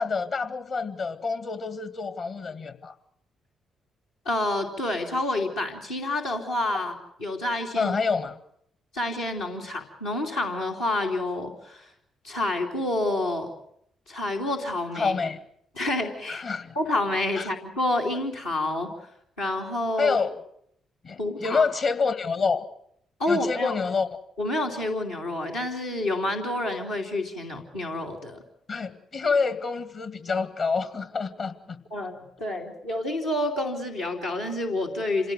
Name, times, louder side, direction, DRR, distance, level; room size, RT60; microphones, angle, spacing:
voice 1, 0.0-2.9 7.8-8.4 15.0-15.4 16.3-16.8 17.4-17.5 20.0-20.3 21.0-22.6 23.3-24.1 28.7-31.8, left 4 dB, 55° left, 11 dB, 2.1 m, -27 dB
voice 2, 4.2-6.9 7.2-7.9 8.9-11.9 12.2-13.5 14.1-15.2 15.7-16.4 16.7-18.9 19.4-20.2 21.2-21.6 23.2-23.8 24.4-28.4 31.9-35.3, left 1 dB, 80° left, -4 dB, 2.8 m, -28 dB
27.0 x 17.0 x 7.8 m, 0.71 s
hypercardioid pair, 40°, 0 cm